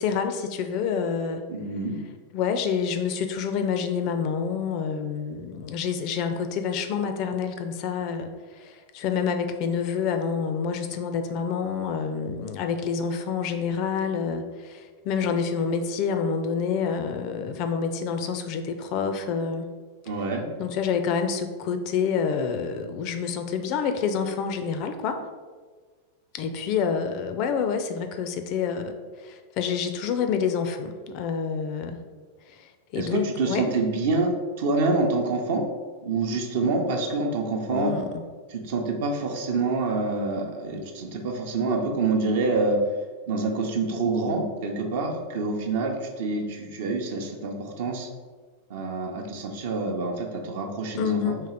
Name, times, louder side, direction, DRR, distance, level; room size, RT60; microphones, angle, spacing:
voice 1, 0.0-1.4 2.3-19.7 20.6-25.2 26.3-32.0 32.5-33.7 37.7-38.1 51.0-51.4, left 6 dB, 40° left, 7 dB, 0.4 m, -28 dB
voice 2, 1.5-2.0 20.1-20.5 32.9-34.3 34.6-35.6 36.0-37.9 38.5-42.8 43.3-48.1 48.7-51.4, right 3 dB, 55° right, 3 dB, 0.7 m, -27 dB
3.7 x 3.0 x 4.3 m, 1.4 s
figure-of-eight pair, 90°, 0 cm